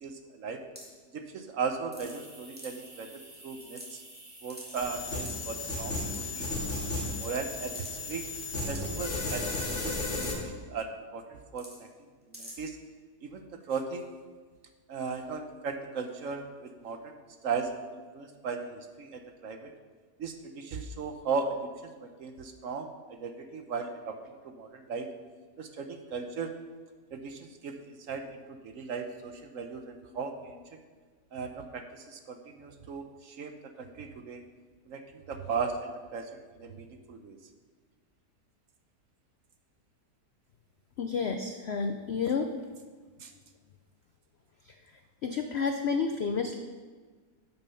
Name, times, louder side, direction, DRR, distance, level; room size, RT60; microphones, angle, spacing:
voice 1, 0.0-0.6 1.1-4.0 4.4-6.4 7.1-8.2 8.7-11.7 12.4-12.8 13.2-14.0 14.9-17.1 17.4-19.7 20.2-21.5 21.8-24.1 24.4-25.1 25.6-26.5 27.1-28.4 28.6-30.6 31.3-33.5 33.8-34.4 34.9-36.2 36.5-37.4 43.2-43.3, right 5 dB, 60° right, 6 dB, 1.0 m, -37 dB
sound 1, 0.8-1.0 1.9-2.3 2.6-2.9 3.3-3.4 3.6-4.2 4.5-4.8 5.2-5.6 6.1-6.3 6.9-7.3 7.7-7.9 8.7-8.8 10.2-10.3 10.6-10.7 11.6-11.8 12.3-12.5, equal, 5° right, 2.4 m, -46 dB
sound 2, 2.0-9.5, right 2 dB, 80° right, 3.6 m, -50 dB
sound 3, 4.8-10.3, left 2 dB, 45° left, 2.3 m, -34 dB
voice 2, 41.0-42.5 44.6-44.8 45.2-46.6, left 5 dB, 70° left, 7 dB, 0.6 m, -30 dB
9.1 x 8.3 x 5.7 m, 1.5 s
omnidirectional pair, 1.8 m